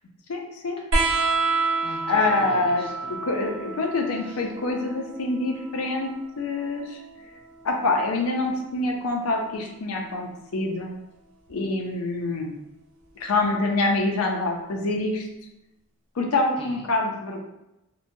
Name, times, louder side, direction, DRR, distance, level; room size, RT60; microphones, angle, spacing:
voice 1, 0.3-0.8 2.1-2.8 3.2-6.1 6.4-7.0 7.6-11.0 11.5-12.5 13.2-15.3 16.2-17.4, left 2 dB, 85° left, 1 dB, 0.5 m, -25 dB
sound 1, 0.9-8.0 9.4-10.2 11.5-11.6, right 3 dB, 65° right, 0.6 m, -30 dB
voice 2, 1.2-3.2 4.3-4.4 16.6-16.8, left 1 dB, 25° left, -2 dB, 0.4 m, -40 dB
2.8 x 2.1 x 2.6 m, 0.88 s
head